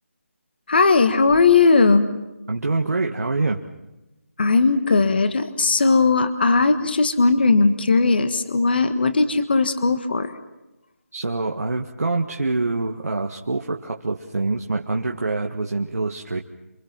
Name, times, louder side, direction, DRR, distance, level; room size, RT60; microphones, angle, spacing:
voice 1, 0.7-2.1 4.4-10.3, left 4 dB, 40° left, 10 dB, 1.5 m, -18 dB
voice 2, 2.5-3.6 11.1-16.4, right 3 dB, 80° right, 1 dB, 1.8 m, -25 dB
28.0 x 24.5 x 6.0 m, 1.0 s
figure-of-eight pair, 175°, 8 cm